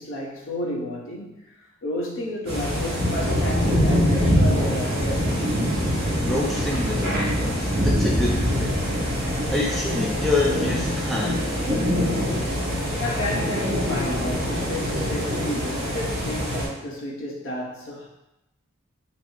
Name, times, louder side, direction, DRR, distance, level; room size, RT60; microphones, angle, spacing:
voice 1, 0.0-5.4 13.0-18.1, left 1 dB, 65° left, -2 dB, 0.8 m, -32 dB
sound 1, 2.5-16.7, equal, 50° right, 1.2 m, -24 dB
voice 2, 6.3-8.7 9.5-11.4, left 2 dB, ahead, -4 dB, 0.4 m, -27 dB
4.0 x 2.0 x 4.4 m, 0.90 s
head